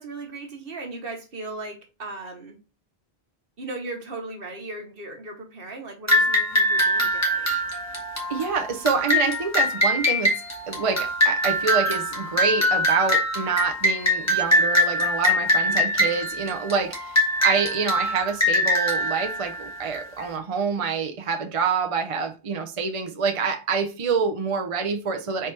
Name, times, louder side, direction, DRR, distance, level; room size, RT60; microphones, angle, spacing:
voice 1, 0.0-2.6 3.6-7.5, right 2 dB, 60° right, 1.3 m, -37 dB
sound 1, 6.1-20.2, left 1 dB, 15° left, 1.2 m, -23 dB
voice 2, 8.3-10.3 10.7-25.5, right 5 dB, 40° right, 0.6 m, -26 dB
4.5 x 2.9 x 3.3 m
omnidirectional pair, 1.1 m